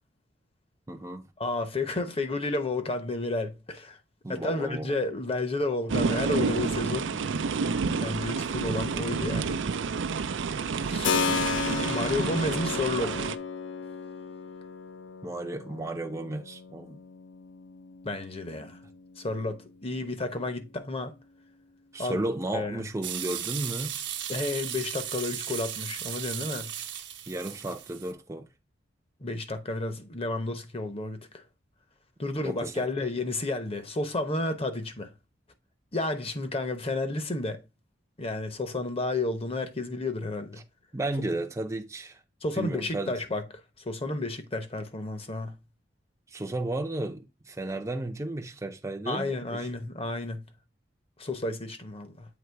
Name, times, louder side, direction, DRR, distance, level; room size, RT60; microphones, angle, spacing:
voice 1, 0.9-1.3 4.2-4.9 15.2-17.0 21.9-23.9 27.3-28.5 32.4-32.9 40.9-42.2 42.5-43.1 46.3-49.3, right 2 dB, 15° right, 0.5 m, -33 dB
voice 2, 1.4-4.0 4.3-7.1 8.0-9.6 10.8-11.2 11.9-13.3 18.0-18.8 19.2-21.1 22.0-22.2 22.5-22.8 24.3-26.7 29.2-31.4 32.2-35.1 35.9-37.6 38.2-40.6 42.4-43.4 43.8-45.5 49.1-50.4 51.2-52.3, left 2 dB, 30° left, 0.9 m, -31 dB
sound 1, 5.9-13.4, right 5 dB, 90° right, 0.5 m, -29 dB
Keyboard (musical), 11.0-19.6, left 5 dB, 75° left, 0.6 m, -34 dB
sound 2, 23.0-28.1, right 10 dB, 70° right, 1.1 m, -36 dB
7.9 x 3.0 x 4.5 m
head